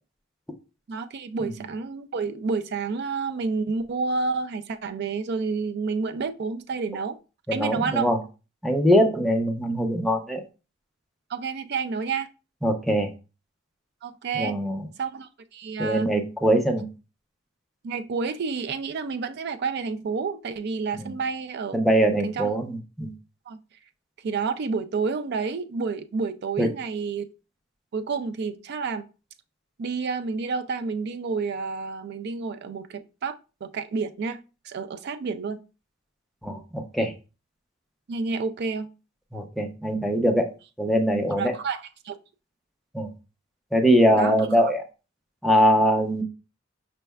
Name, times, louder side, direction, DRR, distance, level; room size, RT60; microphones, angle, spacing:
voice 1, 0.9-7.2 7.5-8.1 11.3-12.3 14.0-14.6 15.0-16.1 17.8-21.8 22.2-22.5 23.5-23.6 24.2-27.3 27.9-29.0 29.8-34.4 34.6-35.6 38.1-38.9 41.3-42.1 44.2-44.7, right 4 dB, 55° right, 0.4 m, -29 dB
voice 2, 7.5-8.2 8.6-10.4 12.6-13.1 14.3-14.8 15.8-16.9 21.0-21.1 21.7-23.1 26.6-26.7 36.4-37.1 39.3-40.5 40.8-41.5 42.9-43.1 43.7-44.8 45.4-46.2, equal, ahead, 0.6 m, -22 dB
5.2 x 3.3 x 2.3 m
head